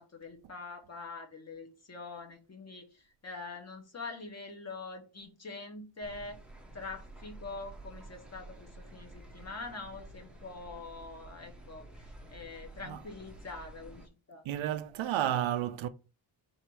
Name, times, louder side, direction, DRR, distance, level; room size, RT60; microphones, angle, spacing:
voice 1, 0.0-6.4 6.7-14.4, left 3 dB, 30° left, 0.8 m, -44 dB
sound 1, 6.0-14.1, right 2 dB, ahead, 0.5 m, -51 dB
voice 2, 14.4-15.9, right 11 dB, 70° right, 0.5 m, -31 dB
4.3 x 2.6 x 4.5 m
wide cardioid pair, 175°, 49 cm